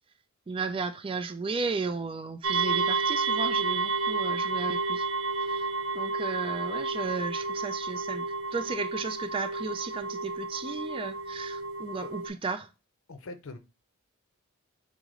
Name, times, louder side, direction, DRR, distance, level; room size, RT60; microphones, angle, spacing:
voice 1, 0.5-5.1 5.4-12.7, right 4 dB, 25° right, 0.3 m, -34 dB
sound 1, 2.4-12.3, right 3 dB, 80° right, 0.6 m, -31 dB
voice 2, 13.1-13.6, left 3 dB, 70° left, 0.6 m, -42 dB
4.7 x 2.1 x 3.6 m
head